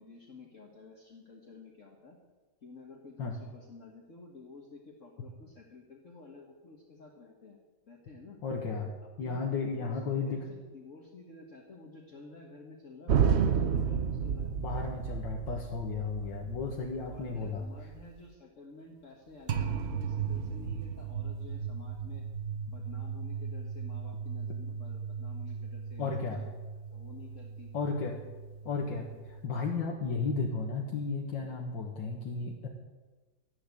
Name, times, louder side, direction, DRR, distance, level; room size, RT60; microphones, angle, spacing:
voice 1, 0.0-2.2 2.6-7.6 7.9-8.4 9.2-14.5 17.1-22.3 22.7-26.1 26.4-26.5 26.9-27.7, left 3 dB, 45° left, 0 dB, 1.8 m, -51 dB
voice 2, 8.4-10.5 14.6-17.7 26.0-26.4 27.7-28.2 28.7-32.7, left 4 dB, 85° left, -1 dB, 2.3 m, -34 dB
sound 1, 13.1-18.2 19.5-29.5, right 7 dB, 55° right, 0.7 m, -34 dB
12.5 x 11.0 x 8.4 m, 1.2 s
omnidirectional pair, 2.0 m